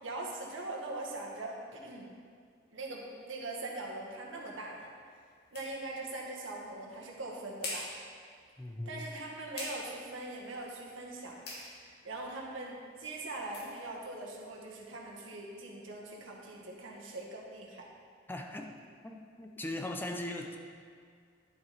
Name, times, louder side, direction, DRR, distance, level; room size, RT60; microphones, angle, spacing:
voice 1, 0.0-2.2 2.7-4.9 5.5-7.9 8.9-11.4 11.8-17.9, right 2 dB, 85° right, -2 dB, 1.7 m, -42 dB
sound 1, 3.8-15.3, left 2 dB, 55° left, 2.2 m, -49 dB
voice 2, 8.6-9.0 18.3-20.6, left 1 dB, 10° left, 3 dB, 0.5 m, -39 dB
11.0 x 7.9 x 4.3 m, 2.1 s
head